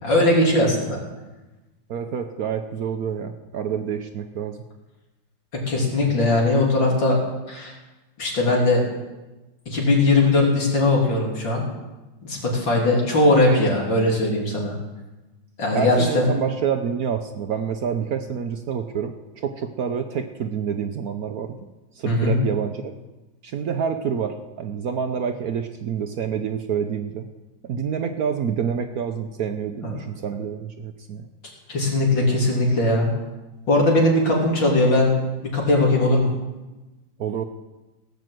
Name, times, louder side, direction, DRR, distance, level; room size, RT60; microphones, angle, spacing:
voice 1, 0.0-1.0 5.7-7.2 7.5-7.7 8.2-8.8 9.7-11.6 12.2-14.7 15.6-16.3 22.1-22.4 31.7-33.1 33.7-35.1 35.5-36.3, left 2 dB, 75° left, -2 dB, 3.8 m, -19 dB
voice 2, 1.9-4.6 6.1-6.2 15.7-21.6 22.0-22.9 23.4-27.3 27.6-31.3 37.2-37.4, right 7 dB, 60° right, 7 dB, 1.0 m, -27 dB
17.0 x 6.9 x 7.7 m, 1.1 s
omnidirectional pair, 2.1 m